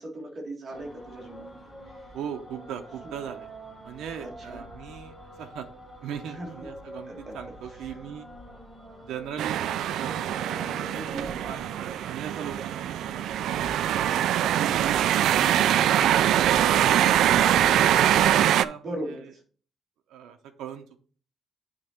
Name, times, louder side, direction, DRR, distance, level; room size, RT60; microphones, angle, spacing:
voice 1, 0.0-1.6 2.0-2.1 4.2-4.6 6.3-6.7 7.1-7.3 7.9-8.0 10.9-11.3 18.8-19.2, right 1 dB, 30° right, -1 dB, 2.0 m, -38 dB
sound 1, 0.7-18.4, equal, 5° left, 1.5 m, -45 dB
voice 2, 2.1-3.5 3.8-5.7 6.0-8.3 9.0-10.7 11.2-13.7 14.5-15.0 15.3-19.3 20.1-21.0, right 8 dB, 90° right, 5 dB, 0.7 m, -39 dB
sound 2, 9.4-18.6, right 11 dB, 70° right, 0.3 m, -23 dB
8.7 x 3.7 x 4.4 m, 0.41 s
cardioid pair, 180°, 0 cm